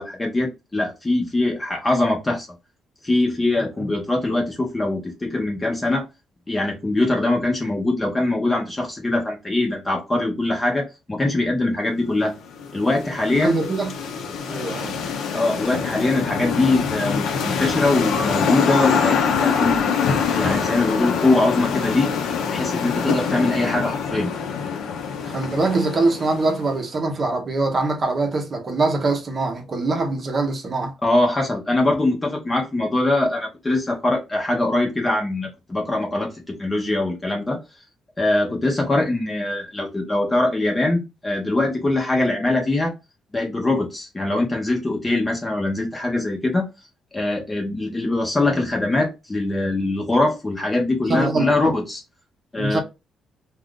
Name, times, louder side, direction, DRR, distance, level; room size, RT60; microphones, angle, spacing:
voice 1, 0.0-2.5 3.0-6.0 6.5-12.4 12.7-13.5 15.3-19.9 20.4-22.1 22.5-24.3 31.0-37.6 38.2-42.9 43.3-46.7 47.1-52.0 52.5-52.8, left 2 dB, 20° left, 0.8 m, -22 dB
sound 1, 12.2-26.8, left 6 dB, 85° left, 0.6 m, -25 dB
voice 2, 13.4-13.9 14.5-15.0 25.2-30.9 51.1-51.5 52.6-52.8, right 3 dB, 40° right, 0.7 m, -23 dB
2.4 x 2.4 x 3.6 m
cardioid pair, 115°, 0 cm